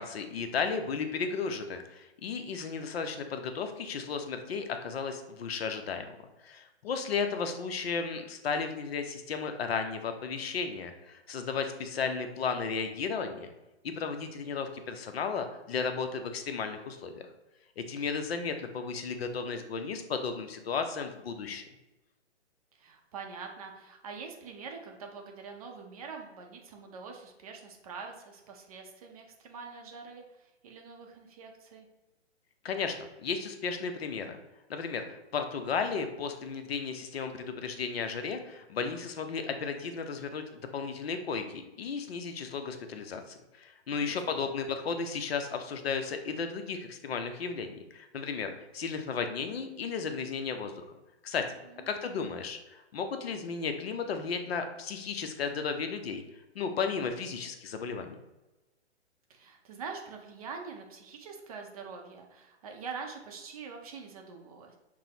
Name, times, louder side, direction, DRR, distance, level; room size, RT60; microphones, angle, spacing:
voice 1, 0.0-6.1 6.4-13.5 13.8-17.3 17.8-21.6 32.6-34.4 34.7-40.4 40.7-50.9 51.2-51.5 51.9-56.2 56.5-58.1, left 5 dB, 60° left, 7 dB, 0.6 m, -34 dB
voice 2, 2.5-2.9 7.1-7.6 22.7-31.9 43.9-44.5 51.7-52.2 59.3-64.7, right 5 dB, 35° right, 2 dB, 0.5 m, -45 dB
5.9 x 2.0 x 2.8 m, 1.0 s
hypercardioid pair, 140°, 34 cm